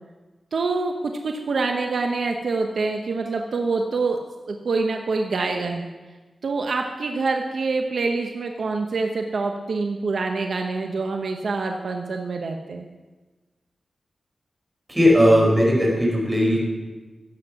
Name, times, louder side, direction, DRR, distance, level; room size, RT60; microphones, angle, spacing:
voice 1, 0.5-4.2 4.5-5.9 6.4-12.9, right 3 dB, 75° right, 3 dB, 1.0 m, -26 dB
voice 2, 14.9-16.6, equal, 15° right, -2 dB, 5.1 m, -17 dB
16.0 x 8.0 x 5.9 m, 1.3 s
wide cardioid pair, 85°, 0 cm